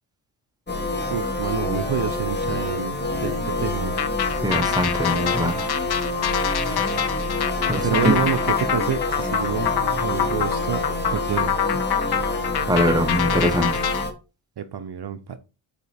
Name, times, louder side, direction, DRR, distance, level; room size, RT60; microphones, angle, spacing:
sound 1, 0.7-14.1, left 2 dB, 20° left, 1.2 m, -27 dB
voice 1, 1.1-3.9 7.8-10.8 11.1-11.6 14.6-15.4, right 8 dB, 55° right, 0.7 m, -27 dB
sound 2, 4.0-14.0, left 9 dB, 55° left, 0.6 m, -26 dB
voice 2, 4.4-5.6 7.7-8.2 12.7-13.8, equal, 10° right, 0.9 m, -22 dB
5.4 x 4.4 x 4.2 m
cardioid pair, 70°, 49 cm